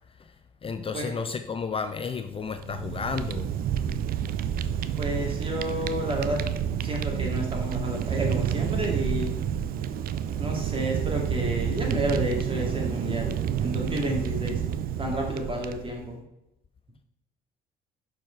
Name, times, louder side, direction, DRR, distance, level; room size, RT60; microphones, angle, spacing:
voice 1, 0.6-3.5, left 5 dB, 30° left, 9 dB, 0.5 m, -32 dB
Fire, 2.5-16.1, right 9 dB, 60° right, 0.5 m, -29 dB
voice 2, 5.0-6.5 6.8-9.3 10.4-13.3 13.6-14.6 15.0-16.2, equal, 30° right, 0 dB, 2.3 m, -31 dB
6.1 x 4.7 x 4.6 m, 0.86 s
supercardioid pair, 65°, 17 cm